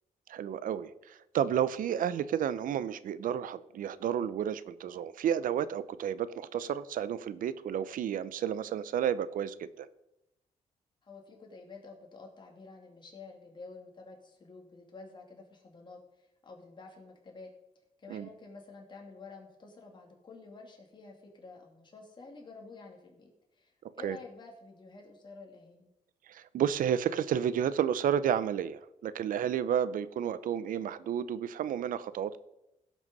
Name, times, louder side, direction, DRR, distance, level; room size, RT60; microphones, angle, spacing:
voice 1, 0.3-9.9 18.1-18.3 24.0-24.2 26.3-32.4, right 9 dB, 75° right, 16 dB, 0.7 m, -31 dB
voice 2, 11.0-17.5 18.0-25.9, left 3 dB, 35° left, 0 dB, 2.6 m, -50 dB
16.5 x 6.2 x 5.4 m, 0.88 s
cardioid pair, 115°, 14 cm